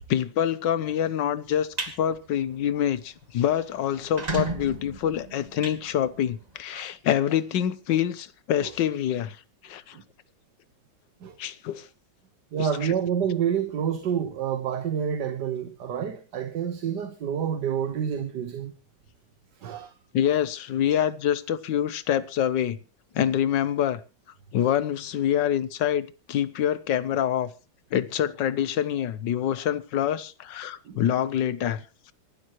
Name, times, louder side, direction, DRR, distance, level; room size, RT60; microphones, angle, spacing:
voice 1, 0.1-1.7 2.0-9.4 9.6-10.0 11.4-11.9 12.6-12.7 20.1-22.8 23.1-24.0 24.5-27.5 27.9-31.8, left 10 dB, 85° left, 1.6 m, -26 dB
sound 1, 1.5-1.9 2.4-2.6 3.0-3.1 3.3-3.4 3.9-6.5, right 2 dB, 25° right, 2.0 m, -33 dB
voice 2, 12.5-18.7 19.6-19.9 20.9-21.0 30.9-31.0, right 8 dB, 70° right, 1.8 m, -28 dB
25.5 x 12.0 x 3.0 m
omnidirectional pair, 1.9 m